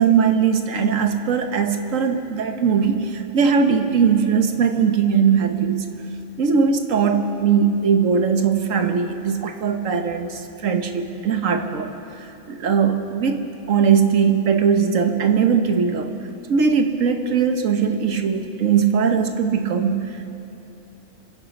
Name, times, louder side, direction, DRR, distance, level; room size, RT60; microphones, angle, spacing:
voice 1, 0.0-5.8 6.4-11.9 12.5-13.4 13.7-16.1 16.5-20.3, right 6 dB, 75° right, 6 dB, 1.4 m, -20 dB
26.5 x 9.2 x 5.4 m, 2.8 s
omnidirectional pair, 1.4 m